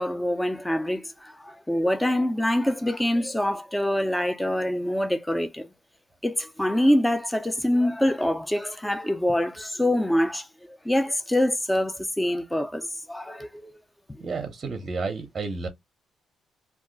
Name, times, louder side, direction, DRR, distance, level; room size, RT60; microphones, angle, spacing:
voice 1, 0.0-5.7 6.2-13.7 14.1-14.2, left 1 dB, 10° left, 0.5 m, -25 dB
voice 2, 14.2-15.7, right 4 dB, 40° right, 0.6 m, -31 dB
2.3 x 2.1 x 3.7 m
cardioid pair, 90°, 0 cm